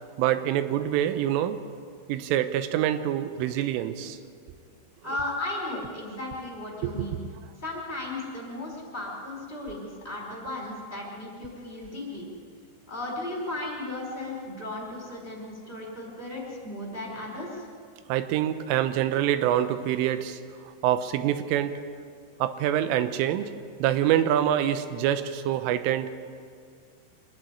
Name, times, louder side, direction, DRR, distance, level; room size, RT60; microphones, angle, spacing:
voice 1, 0.2-1.6 2.1-4.2 6.8-7.1 18.1-20.4 20.8-21.8 22.4-23.5 23.8-26.1, right 11 dB, 90° right, 10 dB, 3.4 m, -25 dB
voice 2, 5.0-7.2 7.6-12.3 12.9-17.7, left 2 dB, 15° left, -3 dB, 4.3 m, -35 dB
25.0 x 11.0 x 9.7 m, 2.2 s
omnidirectional pair, 5.7 m